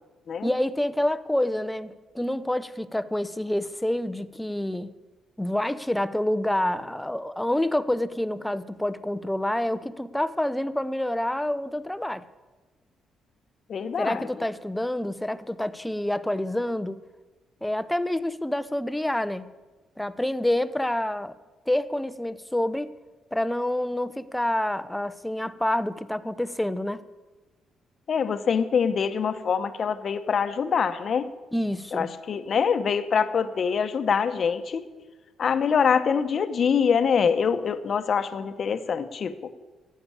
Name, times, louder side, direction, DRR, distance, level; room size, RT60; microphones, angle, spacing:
voice 1, 0.4-4.9 5.4-12.3 14.0-17.0 17.6-19.5 20.0-21.4 21.7-22.9 23.3-27.0 31.5-32.1, left 1 dB, 5° left, 0.6 m, -27 dB
voice 2, 13.7-14.4 28.1-31.3 31.9-34.8 35.4-39.3, left 6 dB, 50° left, 0.9 m, -24 dB
12.5 x 8.5 x 8.6 m
cardioid pair, 90°, 0 cm